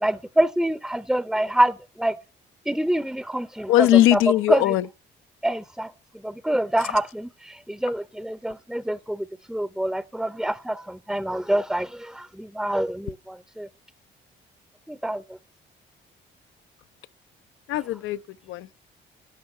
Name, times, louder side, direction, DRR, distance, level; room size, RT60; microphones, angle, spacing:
voice 1, 0.0-2.1 2.7-4.2 4.5-4.8 5.4-5.9 6.2-13.7 14.9-15.2, right 1 dB, ahead, 0.5 m, -26 dB
voice 2, 3.7-4.8 17.7-18.2 18.5-18.7, left 14 dB, 85° left, 0.5 m, -19 dB
11.5 x 5.5 x 7.7 m
cardioid pair, 90°, 20 cm